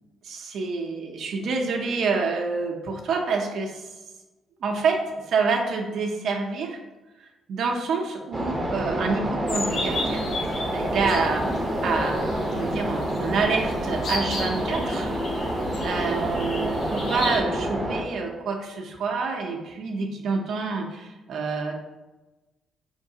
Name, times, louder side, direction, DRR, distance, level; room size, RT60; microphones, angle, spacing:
voice 1, 0.2-3.9 4.6-6.8 7.2-10.3 10.7-21.7, right 4 dB, 70° right, 1 dB, 0.6 m, -28 dB
sound 1, 8.3-18.0, right 1 dB, 20° right, 0.7 m, -28 dB
sound 2, 9.5-17.4, left 2 dB, 60° left, 0.9 m, -35 dB
4.4 x 3.2 x 2.7 m, 1.1 s
cardioid pair, 90°, 0 cm